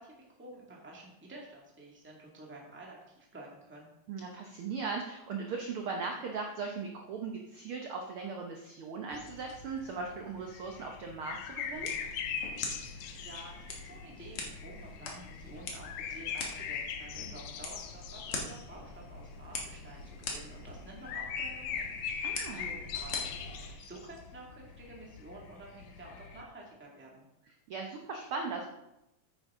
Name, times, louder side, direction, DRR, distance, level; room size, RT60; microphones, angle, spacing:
voice 1, 0.0-3.9 13.2-22.0 22.3-27.2, right 2 dB, 5° right, -2 dB, 1.3 m, -50 dB
voice 2, 4.1-11.9 22.2-22.7 27.7-28.7, right 4 dB, 65° right, 2 dB, 1.4 m, -38 dB
sound 1, 9.1-26.4, left 7 dB, 80° left, 2.1 m, -41 dB
sound 2, 11.7-23.7, left 3 dB, 55° left, 2.1 m, -43 dB
9.2 x 9.1 x 3.7 m, 0.88 s
omnidirectional pair, 3.4 m